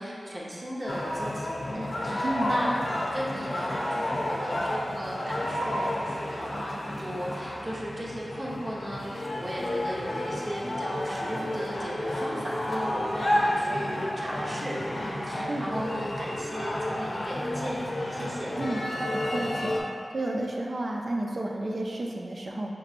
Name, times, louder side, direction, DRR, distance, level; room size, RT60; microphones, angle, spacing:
voice 1, 0.0-2.8 3.1-18.5, equal, 40° right, -6 dB, 1.0 m, -36 dB
sound 1, 0.9-19.8, left 1 dB, 65° left, 0.6 m, -31 dB
voice 2, 19.1-19.7 20.1-22.7, right 1 dB, 55° right, 0 dB, 0.5 m, -31 dB
5.9 x 3.0 x 2.5 m, 2.3 s
cardioid pair, 50°, 0 cm